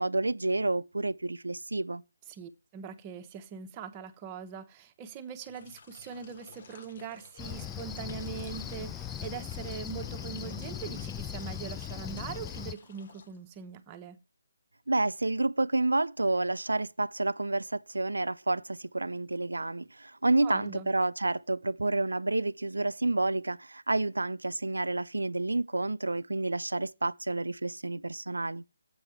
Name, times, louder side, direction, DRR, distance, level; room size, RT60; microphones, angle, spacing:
voice 1, 0.0-2.0 14.9-28.6, right 2 dB, 85° right, 0.4 m, -29 dB
voice 2, 2.3-14.2 20.4-20.9, right 7 dB, 20° right, 0.9 m, -42 dB
sound 1, 5.4-13.8, left 5 dB, 45° left, 0.9 m, -53 dB
Cricket, 7.4-12.7, left 9 dB, 10° left, 0.4 m, -39 dB
7.7 x 4.9 x 5.7 m
figure-of-eight pair, 150°, 0 cm